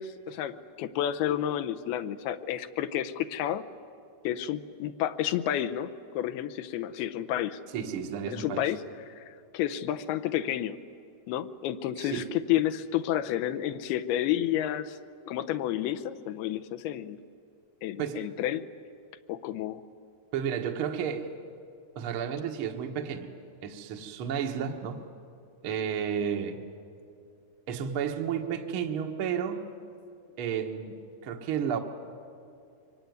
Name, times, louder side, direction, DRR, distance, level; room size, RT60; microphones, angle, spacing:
voice 1, 0.0-3.6 4.2-7.6 8.3-8.8 9.1-10.8 11.3-15.0 15.3-17.2 17.8-18.7 19.3-19.8, left 11 dB, 80° left, 8 dB, 2.7 m, -30 dB
voice 2, 7.7-8.7 12.0-12.3 18.0-18.3 20.3-21.3 21.9-23.3 23.6-25.0 25.6-26.6 27.7-29.7 30.4-31.8, right 8 dB, 60° right, 3 dB, 1.4 m, -32 dB
24.5 x 24.5 x 9.5 m, 2.4 s
omnidirectional pair, 4.5 m